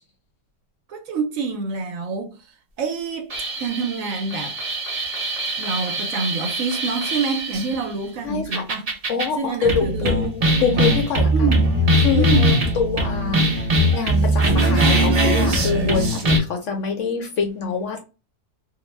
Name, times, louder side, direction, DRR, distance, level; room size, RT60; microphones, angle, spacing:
voice 1, 0.9-2.5 2.8-3.3 3.6-4.6 5.6-8.9 9.3-10.2 11.3-11.7 12.1-12.7, right 4 dB, 70° right, 0.9 m, -27 dB
sound 1, 3.3-7.8 8.5-9.3 9.6-16.4, right 1 dB, 50° right, 0.4 m, -21 dB
voice 2, 8.2-8.6 9.1-10.3 10.6-11.3 12.0-13.6 13.9-18.0, left 5 dB, 65° left, 0.8 m, -25 dB
2.5 x 2.1 x 3.1 m
omnidirectional pair, 1.6 m